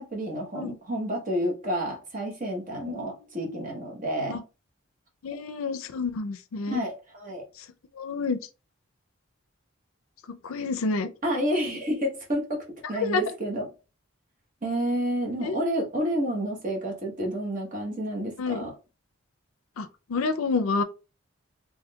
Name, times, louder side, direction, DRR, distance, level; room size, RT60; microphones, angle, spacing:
voice 1, 0.0-4.4 6.7-7.4 11.2-13.7 14.6-18.7, equal, 40° right, 1.0 m, -30 dB
voice 2, 5.2-6.8 8.0-8.4 10.3-11.1 13.0-13.2 15.4-15.6 18.4-18.6 19.8-20.8, left 4 dB, 75° left, 0.4 m, -29 dB
3.6 x 3.1 x 2.2 m
head